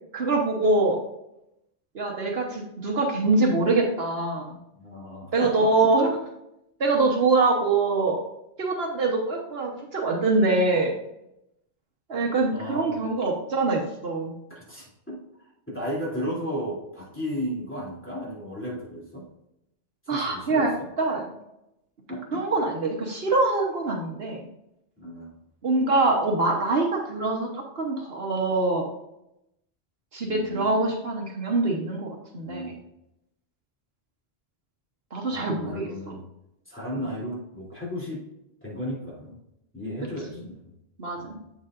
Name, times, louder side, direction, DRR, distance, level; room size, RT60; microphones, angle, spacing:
voice 1, 0.1-1.0 1.9-4.6 5.3-6.2 6.8-8.2 8.6-10.9 12.1-14.3 20.1-20.7 21.0-21.2 22.3-24.5 25.6-28.9 30.1-32.6 35.1-36.1 41.0-41.4, right 3 dB, 65° right, 0 dB, 1.3 m, -24 dB
voice 2, 4.7-5.9 12.5-13.0 14.5-19.2 20.0-20.9 22.1-22.4 25.0-25.4 30.3-30.8 32.4-32.8 35.3-36.2 36.7-38.3 38.6-39.4 39.7-40.6 41.2-41.5, equal, 10° left, -6 dB, 3.0 m, -34 dB
7.9 x 7.1 x 2.5 m, 0.84 s
omnidirectional pair, 1.1 m